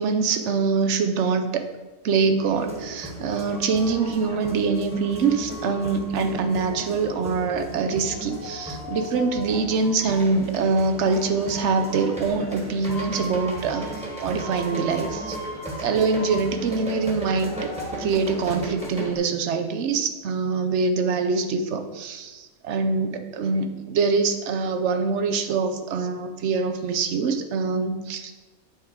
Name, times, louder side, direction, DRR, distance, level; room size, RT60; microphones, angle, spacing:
voice 1, 0.0-1.7 2.0-15.4 15.8-28.3, right 4 dB, 60° right, 7 dB, 0.8 m, -24 dB
sound 1, 2.5-19.2, right 1 dB, 5° right, 1.2 m, -35 dB
8.5 x 3.6 x 4.7 m, 1.2 s
omnidirectional pair, 1.5 m